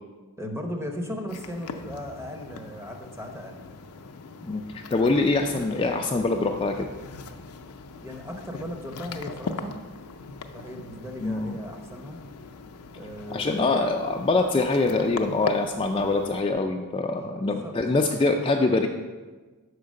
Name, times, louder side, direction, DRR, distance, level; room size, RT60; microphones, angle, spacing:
voice 1, 0.4-3.6 8.0-9.8 10.5-12.2 12.9-13.7 17.1-17.8, equal, 10° right, 2 dB, 0.8 m, -37 dB
sound 1, 1.3-16.4, left 4 dB, 85° left, 0.5 m, -39 dB
voice 2, 4.9-6.9 11.2-11.6 13.3-18.9, left 3 dB, 25° left, 3 dB, 0.3 m, -24 dB
5.8 x 4.7 x 6.4 m, 1.3 s
head